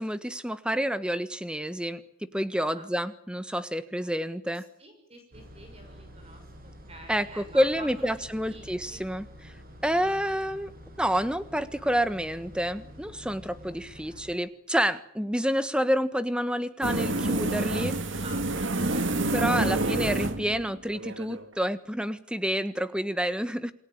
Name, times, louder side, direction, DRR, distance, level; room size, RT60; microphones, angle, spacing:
voice 1, 0.0-2.0 2.3-4.6 7.1-9.5 9.8-10.7 11.0-17.9 19.3-23.7, equal, 5° right, 12 dB, 1.5 m, -28 dB
voice 2, 4.5-9.0 9.9-10.2 14.0-14.4 15.2-15.5 17.7-19.4, right 2 dB, 30° right, 5 dB, 5.9 m, -49 dB
sound 1, 5.3-14.3, equal, 45° right, 6.7 m, -48 dB
sound 2, 16.8-21.4, right 2 dB, 65° right, 2.2 m, -28 dB
28.5 x 20.5 x 8.9 m, 0.65 s
head